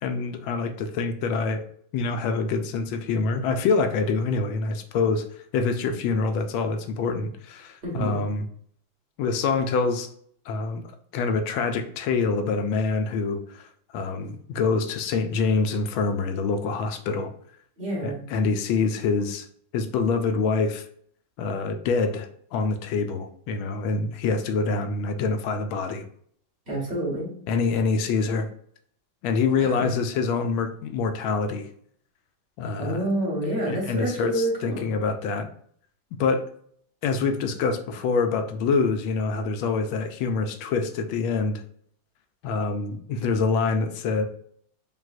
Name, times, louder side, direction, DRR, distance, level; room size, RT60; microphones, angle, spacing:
voice 1, 0.0-1.6 1.9-5.2 5.5-8.5 9.2-10.1 10.5-10.8 11.1-17.3 18.0-19.5 19.7-20.9 21.4-26.0 27.5-28.5 29.2-31.7 32.6-33.0 33.7-35.5 36.2-36.5 37.0-41.6 42.4-44.2, left 4 dB, 85° left, 7 dB, 1.4 m, -26 dB
voice 2, 7.8-8.2 17.8-18.2 26.7-27.3 29.6-29.9 32.8-34.9, right 1 dB, 35° right, -5 dB, 1.7 m, -28 dB
5.4 x 2.9 x 2.5 m, 0.62 s
omnidirectional pair, 2.2 m